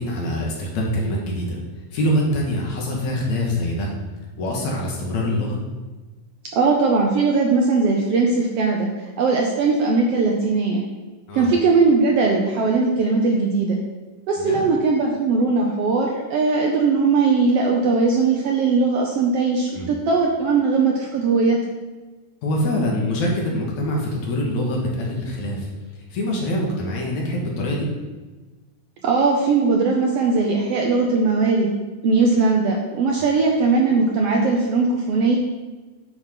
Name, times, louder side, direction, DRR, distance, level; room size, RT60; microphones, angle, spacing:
voice 1, 0.0-1.6 1.9-3.9 4.4-5.6 11.3-11.5 14.4-14.7 19.7-19.9 22.4-25.7 26.1-27.9, left 1 dB, 60° left, -2 dB, 2.7 m, -24 dB
voice 2, 6.5-8.9 9.2-10.8 11.3-13.8 14.3-21.6 29.0-31.7 32.0-35.4, right 4 dB, 90° right, 0 dB, 1.3 m, -19 dB
10.0 x 5.4 x 4.4 m, 1.2 s
omnidirectional pair, 3.9 m